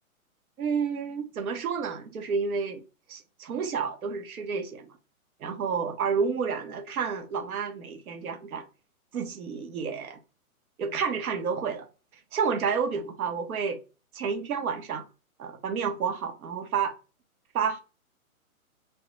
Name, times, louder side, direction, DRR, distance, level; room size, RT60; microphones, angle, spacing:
voice 1, 0.6-2.8 3.1-4.9 5.4-8.6 9.1-10.2 10.8-11.9 12.3-13.8 14.1-15.0 15.4-16.9 17.5-17.8, right 6 dB, 80° right, 0.9 m, -30 dB
2.9 x 2.0 x 3.0 m
hypercardioid pair, 165°, 43 cm